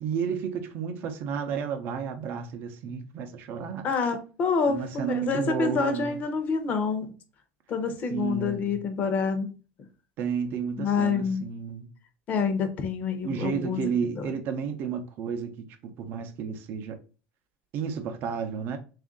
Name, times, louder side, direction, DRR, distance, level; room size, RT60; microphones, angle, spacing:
voice 1, 0.0-3.9 4.7-6.2 8.1-8.8 10.2-11.9 13.2-17.0 17.7-18.8, right 6 dB, 45° right, 0.6 m, -32 dB
voice 2, 3.8-7.1 7.7-9.6 10.8-11.4 12.3-14.3, left 5 dB, 35° left, 0.7 m, -27 dB
3.5 x 2.5 x 3.6 m
supercardioid pair, 150°, 5 cm